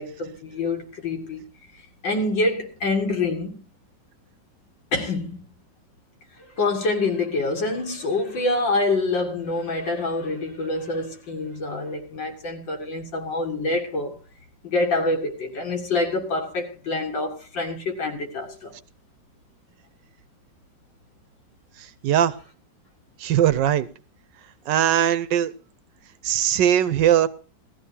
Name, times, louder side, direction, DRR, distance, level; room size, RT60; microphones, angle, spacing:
voice 1, 0.0-1.5 1.7-3.6 4.9-5.4 6.6-14.1 14.6-18.7, left 2 dB, 85° left, 2.6 m, -26 dB
voice 2, 22.0-22.3 23.2-23.9 24.7-25.5 26.2-27.3, right 10 dB, 75° right, 1.4 m, -20 dB
18.0 x 13.5 x 2.8 m
omnidirectional pair, 2.0 m